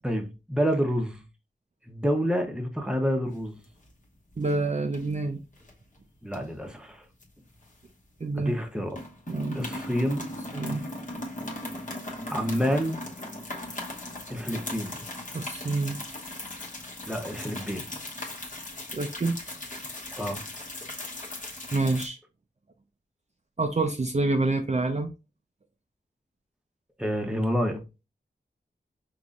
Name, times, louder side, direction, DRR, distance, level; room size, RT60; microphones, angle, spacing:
voice 1, 0.0-1.2 1.9-3.6 6.2-7.0 8.4-9.0 9.5-10.3 12.3-13.0 14.3-15.0 17.1-17.8 20.1-20.4 27.0-27.8, equal, 5° right, 0.8 m, -28 dB
sound 1, 3.4-4.0 4.3-4.6 4.9-5.7 6.3-8.2 8.5-8.6 8.9-22.1, left 1 dB, 40° left, 1.0 m, -38 dB
voice 2, 4.4-5.4 8.2-8.5 9.3-9.6 10.5-10.9 15.3-16.0 18.9-19.4 21.7-22.2 23.6-25.1, right 3 dB, 35° right, 0.5 m, -27 dB
5.3 x 3.0 x 2.4 m
wide cardioid pair, 85°, 19 cm